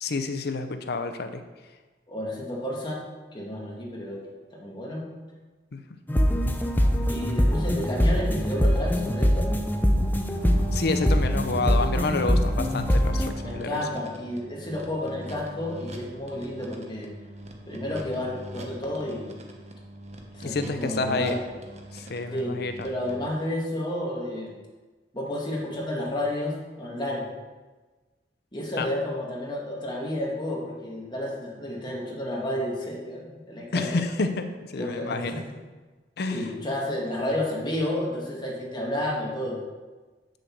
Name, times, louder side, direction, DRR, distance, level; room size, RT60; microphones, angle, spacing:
voice 1, 0.0-1.4 5.7-5.8 10.7-13.8 20.4-21.4 21.9-22.9 28.8-28.9 33.7-35.4 36.2-36.5, left 3 dB, 65° left, 8 dB, 0.6 m, -29 dB
voice 2, 2.1-3.0 3.3-4.2 4.5-5.0 7.1-9.5 13.4-17.1 17.6-19.2 20.3-21.4 22.3-22.6 22.8-24.6 25.1-27.3 28.5-34.0 34.8-35.4 36.3-39.6, left 1 dB, 25° left, -2 dB, 1.9 m, -31 dB
sound 1, 6.1-13.3, equal, 10° left, 0.6 m, -23 dB
sound 2, 10.4-23.3, right 1 dB, 40° right, 1.1 m, -41 dB
7.9 x 6.5 x 4.6 m, 1.3 s
head